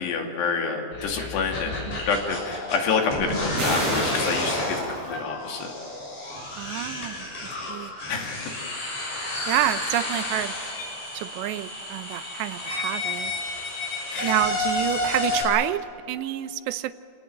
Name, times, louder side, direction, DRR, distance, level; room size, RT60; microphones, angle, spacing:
voice 1, 0.0-5.7 8.1-8.6 14.1-14.3, left 5 dB, 75° left, 2 dB, 4.6 m, -28 dB
sound 1, 0.9-15.4, left 2 dB, 55° left, 8.3 m, -30 dB
voice 2, 1.6-2.0 6.6-7.9 9.5-10.5 11.1-13.3 14.2-16.9, right 14 dB, 85° right, 12 dB, 3.0 m, -28 dB
sound 2, 3.6-5.2, right 2 dB, 60° right, 8.1 m, -32 dB
28.5 x 18.5 x 7.8 m, 2.7 s
omnidirectional pair, 4.9 m